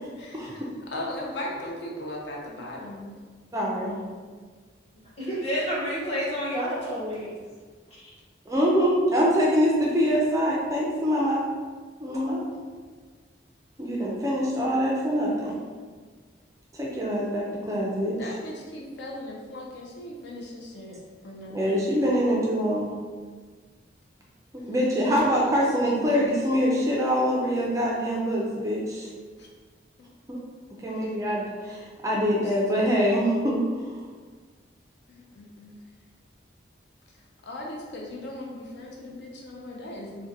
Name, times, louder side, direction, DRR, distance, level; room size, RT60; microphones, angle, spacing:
voice 1, 0.9-3.1 18.1-21.0 21.2-21.8 24.6-24.8 25.5-26.2 29.4-29.5 32.2-33.0 35.1-35.8 37.4-40.3, left 1 dB, 65° left, -2 dB, 0.5 m, -38 dB
voice 2, 3.5-4.0 8.5-11.4 12.0-12.5 13.8-15.5 16.7-18.4 21.5-22.9 24.7-29.1 30.3-30.4 30.8-34.0, equal, 15° right, -3 dB, 0.3 m, -24 dB
voice 3, 5.2-7.3, equal, 35° left, -8 dB, 0.9 m, -29 dB
3.7 x 2.1 x 2.6 m, 1.5 s
head